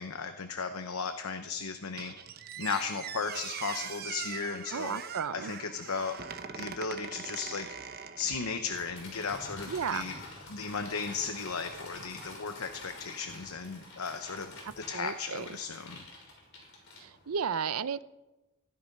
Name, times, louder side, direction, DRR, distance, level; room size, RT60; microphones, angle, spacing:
voice 1, 0.0-2.1 2.6-5.0 5.3-6.2 6.5-10.2 10.5-16.0, left 5 dB, 80° left, 7 dB, 0.9 m, -36 dB
Squeak, 2.0-8.8, right 7 dB, 45° right, 1.0 m, -42 dB
voice 2, 4.7-5.5 9.7-10.1 14.9-15.5 17.0-18.0, right 6 dB, 80° right, 16 dB, 0.6 m, -33 dB
sound 1, 8.7-17.4, left 2 dB, 55° left, 5.9 m, -47 dB
16.0 x 12.0 x 5.4 m, 1.0 s
head